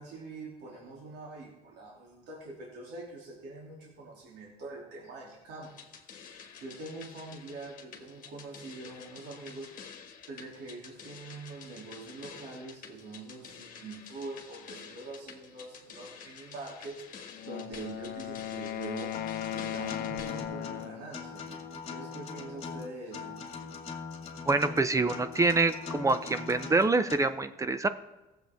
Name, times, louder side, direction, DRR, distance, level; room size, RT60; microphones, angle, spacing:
voice 1, 0.0-5.7 6.6-9.7 10.3-17.0 17.4-19.1 19.5-21.5 21.9-23.4, right 3 dB, 80° right, -3 dB, 2.7 m, -44 dB
sound 1, 5.6-20.4, left 6 dB, 55° left, 1.5 m, -49 dB
Wind instrument woodwind instrument, 17.3-21.1, left 12 dB, 85° left, 0.6 m, -37 dB
Acoustic guitar, 19.1-27.1, left 5 dB, 35° left, 2.2 m, -41 dB
voice 2, 24.4-27.9, right 3 dB, 20° right, 11 dB, 0.6 m, -26 dB
17.5 x 7.8 x 3.5 m, 1.0 s
cardioid pair, 110°, 17 cm